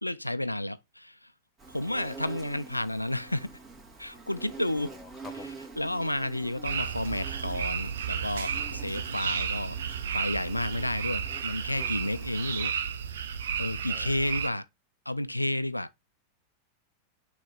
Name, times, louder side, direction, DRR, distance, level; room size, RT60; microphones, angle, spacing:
voice 1, 0.0-1.2 1.7-3.5 4.0-5.0 5.8-9.8 10.1-12.7 13.6-14.7 15.1-15.9, left 1 dB, 85° left, 0.3 m, -31 dB
Insect, 1.6-12.6, right 3 dB, 20° right, 2.4 m, -47 dB
voice 2, 1.9-2.4 4.8-5.6 13.9-14.5, left 5 dB, 15° left, 1.7 m, -50 dB
sound 1, 6.6-14.5, right 7 dB, 65° right, 0.7 m, -33 dB
6.3 x 3.1 x 5.7 m
figure-of-eight pair, 90°, 0 cm